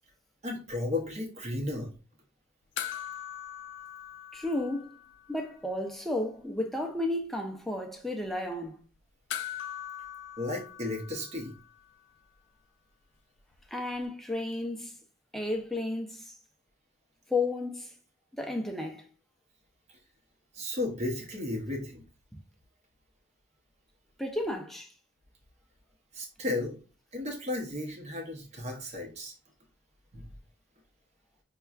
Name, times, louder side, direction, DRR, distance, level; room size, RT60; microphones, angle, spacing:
voice 1, 0.4-1.9 10.4-11.5 20.5-22.0 26.1-26.8 27.1-29.3 30.1-30.2, left 2 dB, 35° right, 0.8 m, -34 dB
sound 1, 2.8-5.4 5.7-5.8 9.3-11.9 14.0-14.1, left 10 dB, 60° left, 0.4 m, -41 dB
voice 2, 4.3-5.0 5.3-8.8 13.7-14.9 15.3-16.3 17.3-17.9 18.3-19.1 24.2-24.9, left 2 dB, ahead, 0.4 m, -33 dB
5.5 x 2.3 x 2.3 m
head